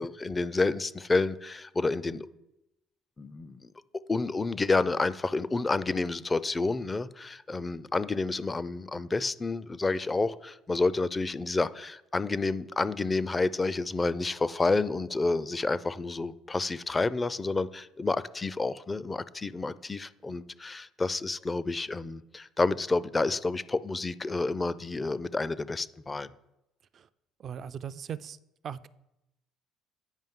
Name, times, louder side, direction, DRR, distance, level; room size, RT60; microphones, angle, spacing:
voice 1, 0.0-2.3 3.2-3.7 4.1-26.3, left 3 dB, 25° left, 0.4 m, -29 dB
voice 2, 27.4-28.4 28.6-28.9, right 8 dB, 50° right, 0.3 m, -38 dB
9.0 x 5.3 x 3.6 m
hypercardioid pair, 65°, 0 cm